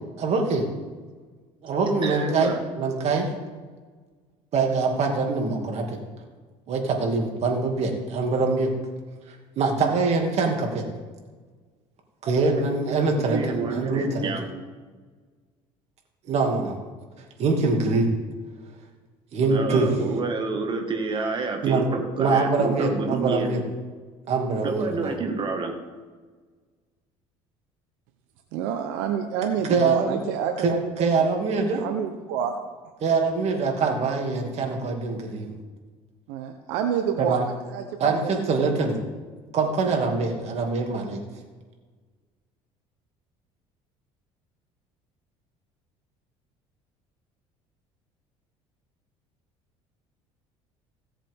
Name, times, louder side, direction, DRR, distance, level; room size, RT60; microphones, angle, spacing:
voice 1, 0.2-0.6 1.6-3.3 4.5-6.0 6.7-8.7 9.3-10.8 12.2-13.4 13.7-14.3 16.3-16.8 17.4-18.1 19.3-19.9 21.6-21.8 22.2-23.6 24.3-25.1 29.7-30.2 30.6-30.7 31.0-31.8 33.0-35.5 37.2-37.5 38.0-39.0 39.5-41.2, right 4 dB, 55° right, 2 dB, 2.4 m, -24 dB
voice 2, 2.0-2.6 12.4-12.6 13.3-14.5 19.5-23.5 24.6-25.8, right 4 dB, 40° right, 2 dB, 1.8 m, -28 dB
voice 3, 28.5-30.9 31.2-31.3 31.8-32.6 36.3-38.5, right 8 dB, 80° right, 5 dB, 0.9 m, -28 dB
17.0 x 7.4 x 3.6 m, 1.4 s
supercardioid pair, 90°, 13 cm